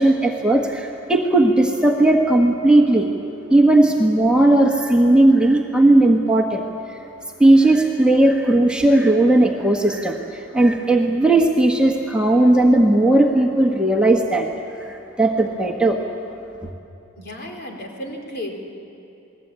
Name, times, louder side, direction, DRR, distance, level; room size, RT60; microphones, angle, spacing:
voice 1, 0.0-3.1 3.5-6.6 6.9-7.0 7.4-14.5 14.8-16.0 16.6-16.7, right 1 dB, 5° right, 0 dB, 1.3 m, -16 dB
voice 2, 17.2-18.5, left 1 dB, 50° left, 1 dB, 3.8 m, -33 dB
28.5 x 19.5 x 8.8 m, 2.8 s
head